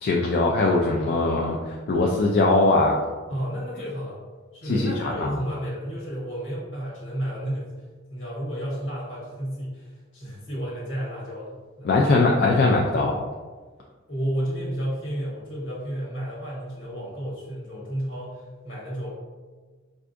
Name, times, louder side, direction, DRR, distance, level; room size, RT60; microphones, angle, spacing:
voice 1, 0.0-3.0 4.6-5.4 11.8-13.2, left 2 dB, 50° left, -1 dB, 0.3 m, -21 dB
voice 2, 3.3-4.2 4.5-7.7 8.1-11.9 14.1-19.1, equal, 65° left, -5 dB, 1.3 m, -32 dB
4.5 x 2.6 x 2.5 m, 1.4 s
head